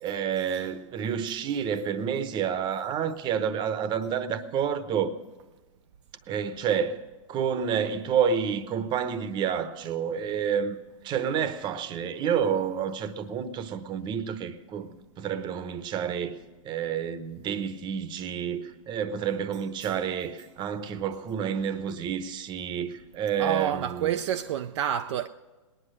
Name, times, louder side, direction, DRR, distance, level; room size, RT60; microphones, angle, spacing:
voice 1, 0.0-5.1 6.3-7.0 7.3-10.8 11.0-16.4 16.6-24.2, right 7 dB, 25° right, 0.9 m, -29 dB
voice 2, 23.4-25.3, right 10 dB, 55° right, 0.5 m, -28 dB
19.0 x 10.0 x 6.4 m
hypercardioid pair, 120°, 17 cm